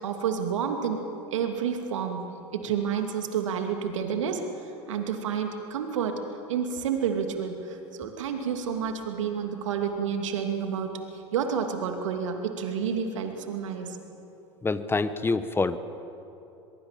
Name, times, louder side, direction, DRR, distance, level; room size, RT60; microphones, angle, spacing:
voice 1, 0.0-1.0 1.3-2.2 2.5-6.2 6.5-11.0 11.3-14.0, right 7 dB, 80° right, 5 dB, 2.7 m, -29 dB
voice 2, 14.6-15.8, left 3 dB, 15° left, 13 dB, 1.2 m, -26 dB
23.0 x 22.5 x 7.6 m, 2.8 s
hypercardioid pair, 85°, 16 cm